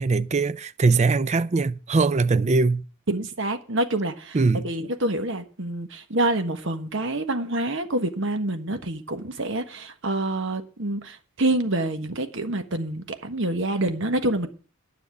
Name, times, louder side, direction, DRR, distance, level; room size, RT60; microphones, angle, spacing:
voice 1, 0.0-2.8 4.3-4.7, right 4 dB, 30° right, 0.4 m, -21 dB
voice 2, 3.1-4.4 4.6-14.5, right 1 dB, 60° right, 1.4 m, -27 dB
10.0 x 6.7 x 7.9 m
head